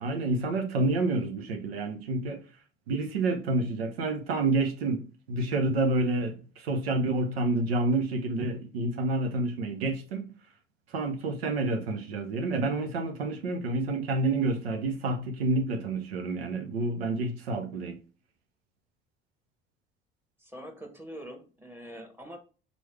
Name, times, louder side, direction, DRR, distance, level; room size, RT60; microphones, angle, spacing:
voice 1, 0.0-2.4 2.9-10.3 10.9-18.0, right 2 dB, 80° right, 0.7 m, -29 dB
voice 2, 20.4-22.4, equal, 5° right, 1.2 m, -44 dB
4.1 x 3.1 x 3.2 m
hypercardioid pair, 55°, 30 cm